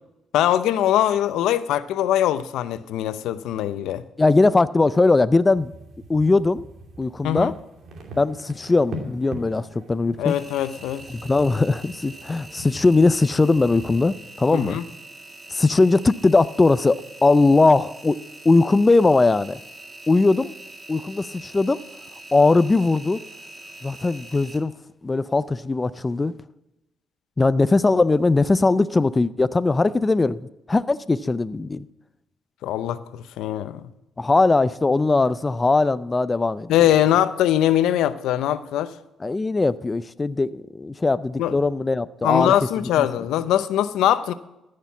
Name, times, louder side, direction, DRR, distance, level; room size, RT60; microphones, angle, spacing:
voice 1, 0.3-4.0 7.2-7.5 10.2-11.0 14.5-14.8 32.6-33.9 36.7-38.9 41.4-41.6 42.2-44.3, left 12 dB, 85° left, 0.6 m, -22 dB
voice 2, 4.2-5.7 6.1-6.6 7.0-7.5 8.2-10.3 11.1-14.8 15.5-19.6 20.1-20.5 20.9-21.8 22.3-23.2 23.8-24.7 25.0-26.3 27.4-30.4 30.7-31.9 34.2-36.7 39.2-42.5 43.0-43.1, left 3 dB, 25° left, 0.4 m, -20 dB
sound 1, 5.5-13.9, right 1 dB, 65° right, 2.5 m, -42 dB
Engine, 10.3-24.6, right 2 dB, 25° right, 2.0 m, -43 dB
14.0 x 6.6 x 7.2 m
cardioid pair, 90°, 0 cm